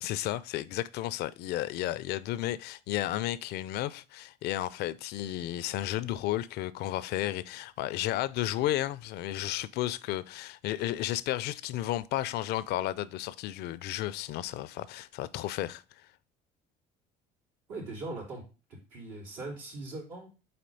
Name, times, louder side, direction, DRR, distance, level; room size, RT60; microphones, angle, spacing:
voice 1, 0.0-15.8, left 14 dB, 65° left, 0.4 m, -33 dB
voice 2, 17.7-20.3, right 2 dB, 85° right, 3.1 m, -41 dB
4.3 x 4.2 x 5.2 m
supercardioid pair, 75°, 18 cm